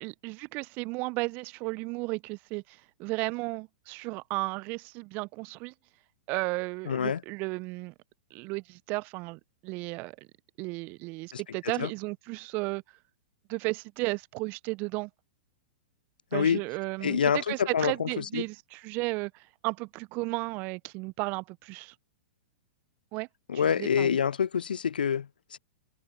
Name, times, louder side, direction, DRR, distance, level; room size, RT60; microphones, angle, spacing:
voice 1, 0.0-5.7 6.3-7.9 8.3-10.2 10.6-12.8 13.5-15.1 16.3-21.9 23.1-23.3 23.6-24.2, right 25 dB, 35° right, 0.8 m, -34 dB
voice 2, 6.9-7.2 11.3-11.9 16.3-16.6 17.0-18.4 23.5-25.6, left 7 dB, 70° left, 0.4 m, -27 dB
figure-of-eight pair, 105°, 5 cm